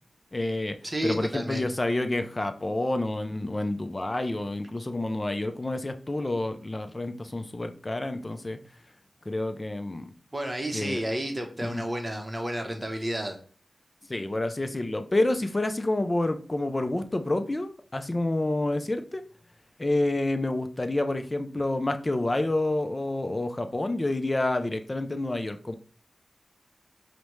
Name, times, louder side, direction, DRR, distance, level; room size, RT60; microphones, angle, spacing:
voice 1, 0.3-0.8 1.0-8.6 9.3-10.1 10.7-11.0 11.6-11.8 14.1-19.2 19.8-25.8, left 2 dB, 30° left, 8 dB, 0.4 m, -28 dB
voice 2, 0.8-1.7 10.3-13.4, right 1 dB, 25° right, 4 dB, 0.7 m, -31 dB
5.0 x 2.1 x 3.0 m, 0.41 s
wide cardioid pair, 80°, 0 cm